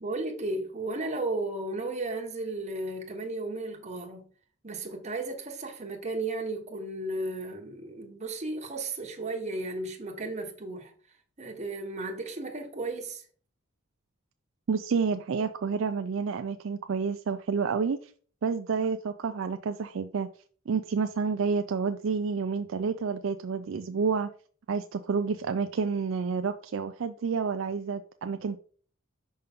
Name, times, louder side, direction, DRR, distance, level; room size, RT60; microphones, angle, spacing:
voice 1, 0.0-4.3 4.6-10.9 11.4-13.2, right 2 dB, 35° right, 1.2 m, -34 dB
voice 2, 14.7-18.1 18.4-20.3 20.7-24.3 24.7-28.6, right 5 dB, 65° right, 0.4 m, -29 dB
5.6 x 5.4 x 3.5 m
head